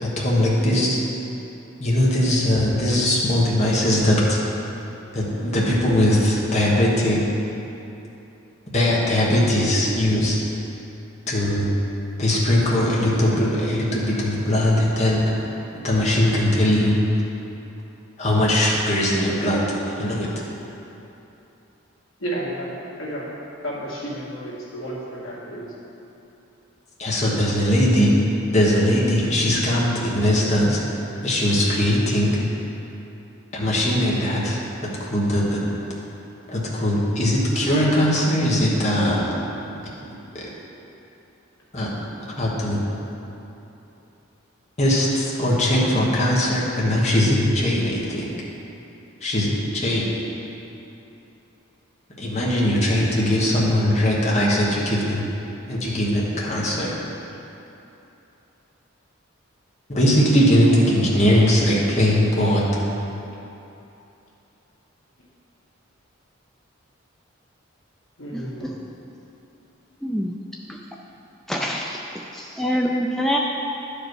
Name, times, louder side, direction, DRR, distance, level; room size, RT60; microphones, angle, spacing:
voice 1, 0.0-1.0 1.8-4.4 5.1-7.2 8.7-10.4 11.3-11.7 12.2-15.2 15.8-17.0 18.2-20.3 27.0-28.1 28.5-30.8 31.2-32.4 33.5-34.6 35.0-35.6 36.5-39.2 41.7-41.9 42.2-42.8 44.8-48.3 49.2-50.1 52.2-55.2 55.7-56.9 59.9-62.8, left 1 dB, 30° left, -5 dB, 1.4 m, -20 dB
voice 2, 22.2-22.7 23.0-23.3 23.6-25.7 68.2-68.8, right 1 dB, 75° left, -6 dB, 2.0 m, -32 dB
voice 3, 68.3-68.7 70.0-70.3 71.5-71.9 72.3-73.4, equal, ahead, -1 dB, 0.3 m, -25 dB
11.0 x 5.0 x 4.7 m, 2.9 s
head